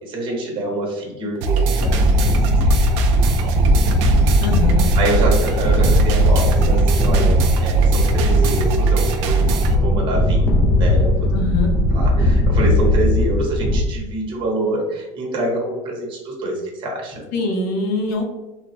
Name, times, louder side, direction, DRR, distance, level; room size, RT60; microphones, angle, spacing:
voice 1, 0.0-2.3 5.0-9.5 9.7-10.5 10.8-11.3 11.9-17.2, right 1 dB, 35° right, -2 dB, 0.8 m, -26 dB
sound 1, 1.4-9.8, right 4 dB, 75° right, 0.4 m, -20 dB
sound 2, 1.8-13.8, left 1 dB, 20° left, 0.5 m, -18 dB
voice 2, 4.4-4.9 11.3-11.7 17.3-18.2, left 2 dB, 70° left, 2 dB, 0.7 m, -23 dB
3.2 x 2.1 x 2.5 m, 1.1 s
cardioid pair, 145°, 15 cm